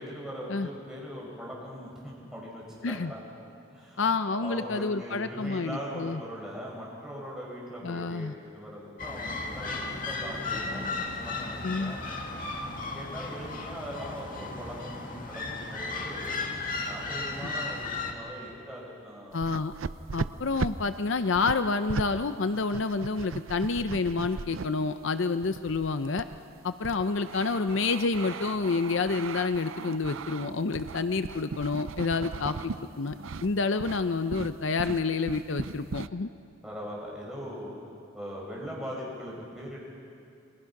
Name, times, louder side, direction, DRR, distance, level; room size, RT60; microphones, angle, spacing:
voice 1, 0.0-3.2 3.7-12.0 12.9-16.4 16.8-19.4 32.2-32.7 33.0-33.4 36.6-37.9 38.1-39.8, equal, ahead, -5 dB, 6.5 m, -41 dB
voice 2, 4.0-6.2 7.8-8.3 11.6-11.9 17.4-17.5 19.3-19.7 20.1-26.2 26.6-33.2 33.4-36.3, left 4 dB, 60° left, 10 dB, 0.6 m, -29 dB
sound 1, 9.0-18.1, left 3 dB, 40° left, 2.1 m, -35 dB
sound 2, 19.3-22.1 22.4-24.7 25.4-32.8 33.1-33.5 33.8-34.0 34.3-36.1, right 4 dB, 70° right, 0.5 m, -37 dB
30.0 x 23.5 x 6.0 m, 2.5 s
head